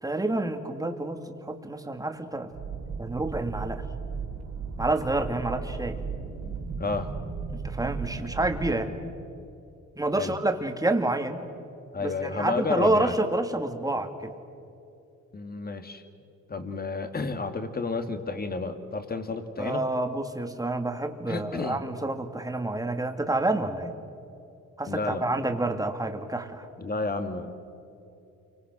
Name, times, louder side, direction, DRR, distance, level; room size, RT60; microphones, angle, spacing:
voice 1, 0.0-2.5 3.0-3.8 4.8-6.0 7.5-8.9 10.0-11.4 12.0-14.3 19.6-24.0 24.8-26.7, right 2 dB, 10° right, 5 dB, 2.3 m, -28 dB
sound 1, 2.5-8.8, right 5 dB, 65° right, 5.2 m, -35 dB
voice 2, 6.8-7.1 10.2-10.3 11.9-13.1 15.3-16.0 16.5-19.8 21.3-21.8 24.9-25.2 26.8-27.5, left 3 dB, 30° left, 8 dB, 2.3 m, -31 dB
29.0 x 25.0 x 6.3 m, 2.8 s
cardioid pair, 90°, 30 cm